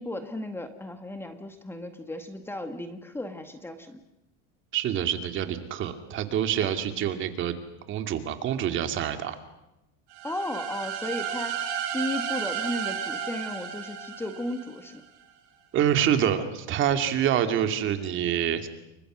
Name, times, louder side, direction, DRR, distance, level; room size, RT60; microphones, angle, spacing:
voice 1, 0.0-4.0 10.2-15.0, left 1 dB, 5° left, 7 dB, 1.5 m, -35 dB
voice 2, 4.7-7.5 7.9-9.3 15.7-18.7, right 9 dB, 35° right, 7 dB, 2.5 m, -26 dB
sound 1, 10.1-14.9, right 8 dB, 55° right, 7.2 m, -33 dB
29.5 x 23.5 x 6.3 m, 0.91 s
supercardioid pair, 155°, 33 cm